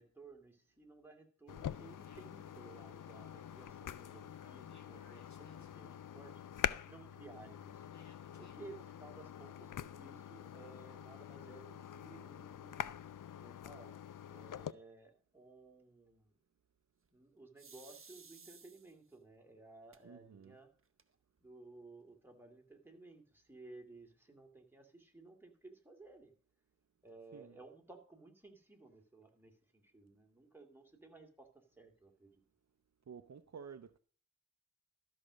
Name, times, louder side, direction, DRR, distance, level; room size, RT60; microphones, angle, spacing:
voice 1, 0.0-6.4 6.8-7.8 8.4-13.0 13.4-13.9 14.3-16.3 17.1-20.7 21.4-26.3 27.0-32.4, right 3 dB, 5° right, 2.5 m, -57 dB
sound 1, 1.5-14.7, left 9 dB, 85° left, 0.5 m, -45 dB
sound 2, 1.7-8.5, left 3 dB, 65° left, 2.1 m, -66 dB
sound 3, 17.6-19.1 19.9-20.0 20.4-20.5 20.8-21.4, right 5 dB, 45° right, 1.0 m, -57 dB
voice 2, 20.0-20.6 27.3-27.6 33.1-34.0, right 6 dB, 60° right, 0.6 m, -52 dB
13.0 x 6.3 x 6.3 m
wide cardioid pair, 70°, 31 cm